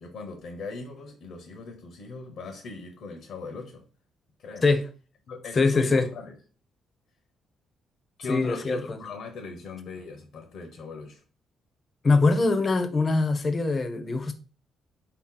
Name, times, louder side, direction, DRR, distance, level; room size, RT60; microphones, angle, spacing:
voice 1, 0.0-3.9 4.4-4.7 5.3-6.4 8.2-11.2, left 3 dB, 70° left, 0.8 m, -39 dB
voice 2, 5.6-6.1 8.3-9.0 12.0-14.3, left 3 dB, 35° left, 0.7 m, -23 dB
4.0 x 2.8 x 3.8 m
cardioid pair, 90°, 0 cm